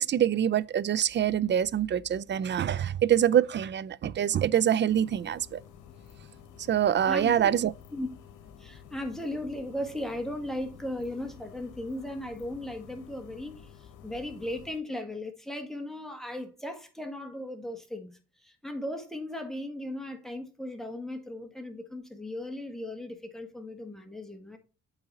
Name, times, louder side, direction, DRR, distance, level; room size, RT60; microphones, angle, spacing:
voice 1, 0.0-5.6 6.7-7.7, right 10 dB, 40° right, 0.4 m, -25 dB
sound 1, 4.9-14.8, left 8 dB, 80° left, 0.9 m, -51 dB
voice 2, 7.0-7.5 7.9-8.1 8.6-24.6, left 1 dB, ahead, 1.5 m, -37 dB
8.0 x 4.0 x 4.0 m
cardioid pair, 90°, 30 cm